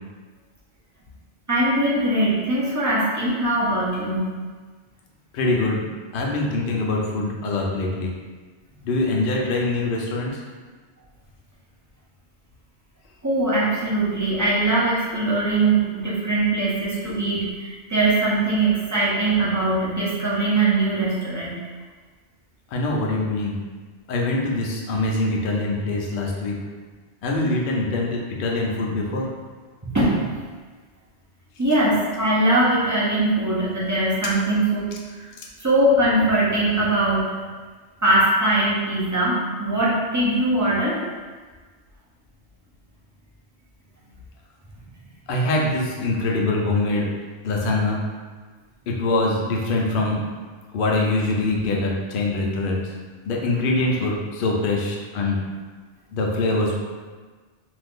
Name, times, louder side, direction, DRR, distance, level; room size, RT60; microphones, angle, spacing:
voice 1, 1.5-4.3 13.2-21.6 29.8-30.2 31.6-34.9 35.6-37.2 38.0-41.0, right 2 dB, 25° right, -7 dB, 0.4 m, -21 dB
voice 2, 5.3-5.8 6.1-8.1 8.8-10.4 22.7-23.5 24.1-26.6 27.2-29.3 45.3-47.1 47.4-48.0 48.9-50.2 50.7-52.8 53.3-55.4 56.1-56.7, left 2 dB, 60° left, -1 dB, 0.7 m, -23 dB
2.6 x 2.4 x 3.5 m, 1.4 s
omnidirectional pair, 1.2 m